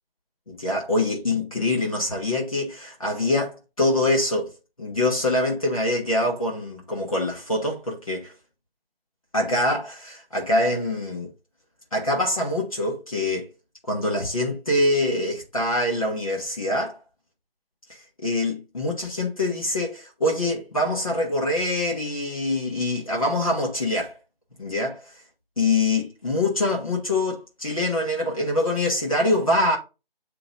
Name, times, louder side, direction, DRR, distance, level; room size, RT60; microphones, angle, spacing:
voice 1, 0.5-4.5 4.8-8.3 9.3-11.3 11.9-13.5 13.9-17.0 17.9-24.2 24.6-25.0 25.6-29.8, left 1 dB, 35° left, 1.3 m, -24 dB
8.4 x 2.9 x 3.9 m
figure-of-eight pair, 175°, 30 cm